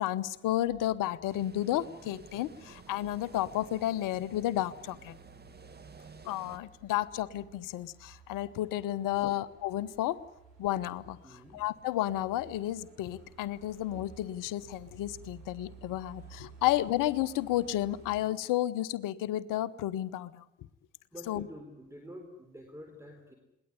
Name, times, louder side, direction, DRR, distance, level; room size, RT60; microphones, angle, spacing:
voice 1, 0.0-5.2 6.2-10.2 10.6-20.5 21.3-21.5, left 14 dB, 55° left, 18 dB, 1.0 m, -32 dB
sound 1, 0.6-18.2, right 5 dB, 75° right, 6.3 m, -56 dB
sound 2, 1.3-6.6, right 4 dB, 25° right, 2.3 m, -53 dB
voice 2, 11.2-11.6 21.1-23.4, equal, 5° right, 4 dB, 4.1 m, -48 dB
21.5 x 18.5 x 9.9 m, 0.86 s
figure-of-eight pair, 45°, 38 cm